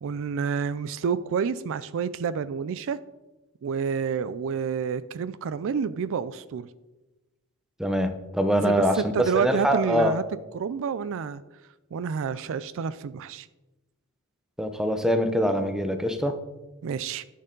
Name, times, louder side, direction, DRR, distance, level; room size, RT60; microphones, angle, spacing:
voice 1, 0.0-3.0 3.6-6.7 8.5-10.2 10.5-11.4 11.9-13.5 16.8-17.2, right 6 dB, 60° right, 16 dB, 0.4 m, -29 dB
voice 2, 7.8-10.1 14.6-16.4, equal, ahead, 7 dB, 0.6 m, -24 dB
11.5 x 6.6 x 3.8 m, 1.1 s
head